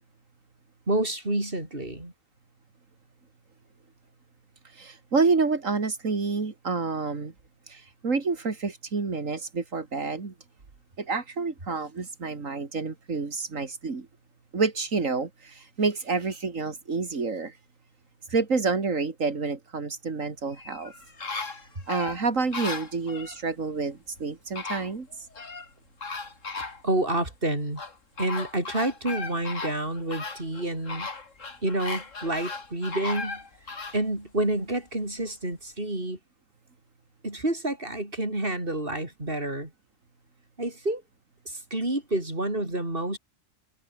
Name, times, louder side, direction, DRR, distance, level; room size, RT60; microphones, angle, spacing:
voice 1, 0.9-2.1 26.6-27.8 28.2-31.1 31.6-33.4 33.9-36.2 37.2-39.7 40.6-41.0 41.5-43.2, right 1 dB, 45° right, 6.2 m, -29 dB
voice 2, 4.6-7.3 7.7-10.3 11.0-14.1 14.5-17.6 18.3-20.9 21.9-25.3, right 4 dB, 90° right, 3.0 m, -28 dB
sound 1, 20.5-23.4 24.2-24.3 24.6-25.7 26.0-27.2 27.8-34.0 34.5-34.6, left 4 dB, 75° left, 3.0 m, -36 dB
omnidirectional pair, 1.3 m